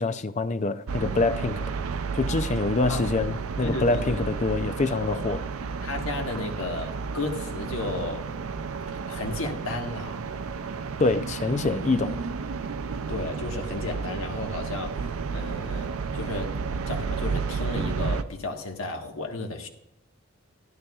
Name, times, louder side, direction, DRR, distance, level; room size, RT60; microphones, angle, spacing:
voice 1, 0.0-1.6 2.1-5.4 11.0-12.2, left 3 dB, 35° left, 0.4 m, -25 dB
sound 1, 0.9-18.2, right 5 dB, 85° right, 0.5 m, -32 dB
voice 2, 3.6-4.2 5.8-8.3 9.1-10.2 13.1-15.1 15.3-16.5 16.9-19.7, left 2 dB, 85° left, 1.3 m, -33 dB
13.0 x 11.0 x 2.3 m
head